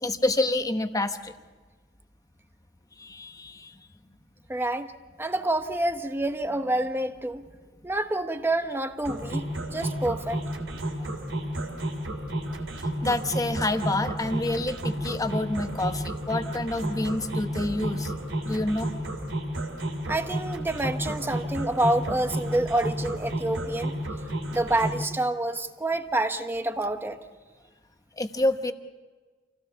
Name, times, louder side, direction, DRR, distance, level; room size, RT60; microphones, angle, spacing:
voice 1, 0.0-1.3 3.0-3.7 12.8-18.9 28.2-28.7, left 2 dB, 20° left, 8 dB, 1.1 m, -28 dB
voice 2, 4.5-4.9 5.2-7.4 7.8-10.4 20.1-23.9 24.5-27.2, right 1 dB, 10° right, 8 dB, 1.1 m, -27 dB
sound 1, 9.0-25.0, right 1 dB, 85° right, 3.4 m, -31 dB
27.5 x 17.0 x 7.0 m, 1.4 s
head